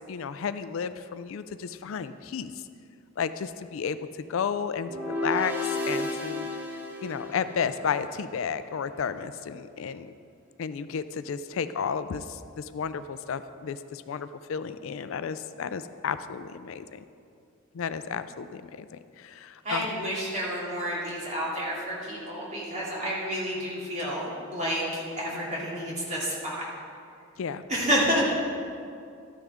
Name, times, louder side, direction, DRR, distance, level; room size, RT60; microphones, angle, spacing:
voice 1, 0.1-2.5 3.2-4.0 4.3-5.5 5.9-6.5 7.0-10.1 10.6-12.2 12.6-17.0 17.7-18.9 19.2-20.1 27.4-27.6, left 6 dB, 70° left, 12 dB, 0.4 m, -32 dB
sound 1, 4.8-8.1, left 2 dB, 10° right, 0.8 m, -32 dB
voice 2, 19.6-24.2 24.5-26.7 27.7-28.2, equal, 35° right, -5 dB, 2.5 m, -29 dB
12.5 x 9.9 x 3.5 m, 2.4 s
head